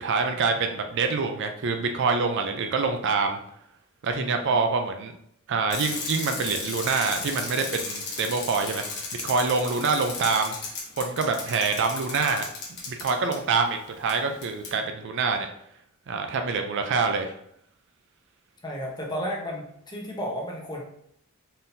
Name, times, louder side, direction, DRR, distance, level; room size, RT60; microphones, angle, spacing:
voice 1, 0.0-3.4 4.0-5.1 5.5-8.8 9.2-10.5 11.0-12.4 12.9-15.5 16.1-17.3, right 4 dB, 55° right, 6 dB, 0.4 m, -26 dB
voice 2, 4.1-4.5 18.6-20.8, equal, 20° left, -2 dB, 0.9 m, -33 dB
Bicycle, 5.7-13.4 14.1-14.2 14.4-14.7, left 4 dB, 50° left, 1.1 m, -35 dB
4.2 x 3.7 x 2.6 m, 0.71 s
head